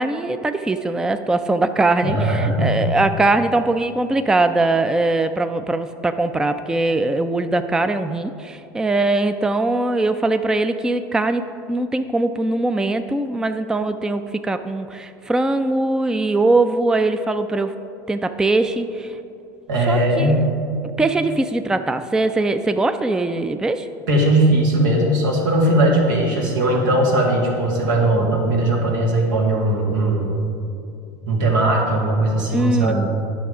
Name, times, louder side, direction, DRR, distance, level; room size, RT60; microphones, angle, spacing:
voice 1, 0.0-11.4 11.7-17.7 18.1-19.2 19.9-20.3 21.0-23.9 32.5-33.1, right 2 dB, 5° right, 10 dB, 0.3 m, -21 dB
voice 2, 2.0-2.8 19.7-20.5 24.1-30.3 31.2-33.1, right 1 dB, 85° right, -2 dB, 2.0 m, -19 dB
9.3 x 6.2 x 4.9 m, 2.6 s
supercardioid pair, 100°, 10 cm